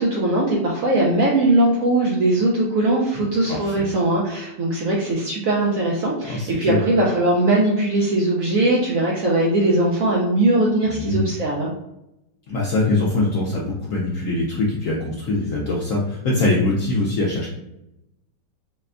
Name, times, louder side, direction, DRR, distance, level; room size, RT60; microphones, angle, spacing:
voice 1, 0.0-11.7, right 2 dB, 70° right, -3 dB, 0.8 m, -20 dB
voice 2, 6.3-6.8 10.9-11.3 12.5-17.5, left 2 dB, 70° left, -4 dB, 0.7 m, -23 dB
4.2 x 2.2 x 2.4 m, 0.86 s
omnidirectional pair, 2.0 m